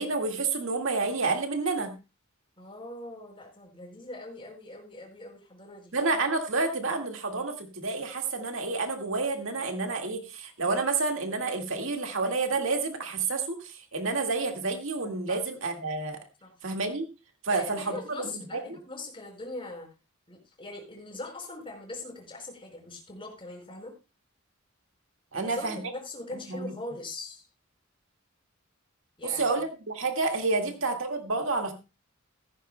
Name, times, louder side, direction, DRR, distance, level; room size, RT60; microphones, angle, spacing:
voice 1, 0.0-1.9 5.9-16.2 16.6-17.1 17.4-18.8 25.3-25.8 26.5-26.7 29.2-31.7, right 3 dB, 65° right, 4 dB, 1.9 m, -29 dB
voice 2, 2.6-5.9 15.3-15.4 16.4-16.5 17.5-19.9 20.3-23.9 25.3-27.4 29.2-29.6, left 2 dB, 25° left, 1 dB, 4.8 m, -41 dB
15.5 x 15.0 x 2.2 m, 0.28 s
head